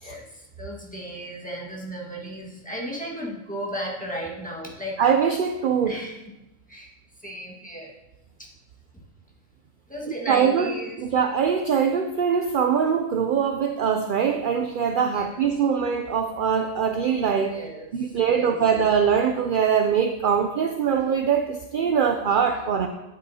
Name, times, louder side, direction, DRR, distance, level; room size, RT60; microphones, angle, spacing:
voice 1, 0.0-5.0 5.8-6.2 6.7-6.9 7.2-7.9 8.4-8.5 8.9-9.0 9.9-11.0 15.1-15.3 17.5-18.8, equal, 5° left, -4 dB, 1.5 m, -35 dB
voice 2, 5.0-6.0 10.1-10.7 11.0-17.6 17.9-22.9, right 7 dB, 60° right, 6 dB, 0.5 m, -22 dB
9.9 x 8.3 x 2.8 m, 0.97 s
omnidirectional pair, 1.3 m